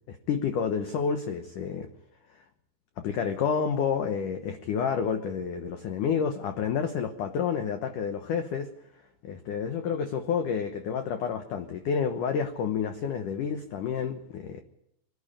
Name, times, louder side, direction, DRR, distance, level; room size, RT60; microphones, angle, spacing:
voice 1, 0.1-1.9 3.0-8.7 9.2-14.6, left 6 dB, 70° left, 7 dB, 1.9 m, -29 dB
25.0 x 12.0 x 8.7 m, 0.81 s
omnidirectional pair, 5.4 m